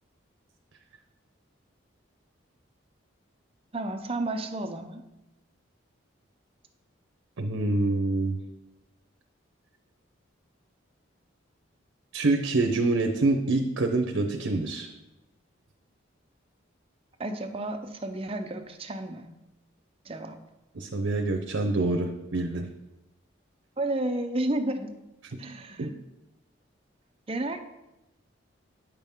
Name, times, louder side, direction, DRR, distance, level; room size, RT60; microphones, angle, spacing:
voice 1, 3.7-5.0 17.2-19.3 20.0-20.4 23.8-24.9 25.4-25.9 27.3-27.6, right 1 dB, 30° right, 6 dB, 0.5 m, -31 dB
voice 2, 7.4-8.4 12.1-14.9 20.7-22.7 25.8-25.9, right 2 dB, 80° right, 5 dB, 0.6 m, -26 dB
8.8 x 6.0 x 3.6 m, 0.97 s
head